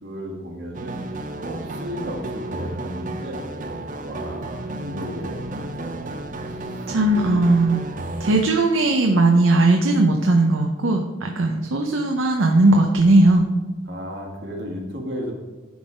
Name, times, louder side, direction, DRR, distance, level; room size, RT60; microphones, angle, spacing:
voice 1, 0.0-1.0 1.4-3.4 4.0-6.0 6.5-6.9 7.2-7.5 13.9-15.3, equal, 65° right, 1 dB, 1.6 m, -34 dB
sound 1, 0.7-8.5, right 2 dB, 40° right, 0.6 m, -32 dB
voice 2, 6.9-7.9 8.2-13.4, right 2 dB, 80° right, 3 dB, 0.7 m, -18 dB
10.5 x 4.0 x 5.0 m, 1.3 s
head